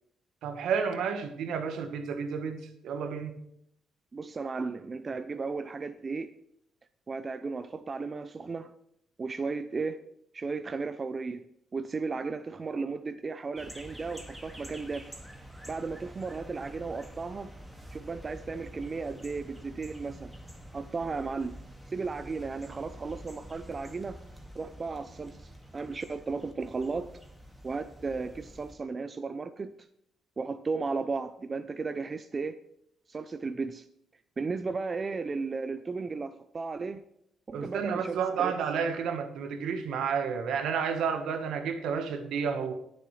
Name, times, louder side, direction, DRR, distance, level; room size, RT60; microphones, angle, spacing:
voice 1, 0.4-3.3 37.5-42.7, right 6 dB, 75° right, 7 dB, 1.2 m, -31 dB
voice 2, 4.1-6.3 7.1-8.7 9.2-10.0 10.3-11.4 11.7-15.2 15.7-17.5 17.9-20.3 20.7-21.5 21.9-24.2 24.5-27.1 27.6-29.9 30.4-32.5 33.1-33.9 34.4-37.0 37.5-38.5, right 4 dB, 35° right, 11 dB, 0.5 m, -35 dB
sound 1, 13.6-28.7, equal, 5° right, 1.9 m, -47 dB
19.5 x 7.1 x 3.2 m, 0.74 s
cardioid pair, 90°, 0 cm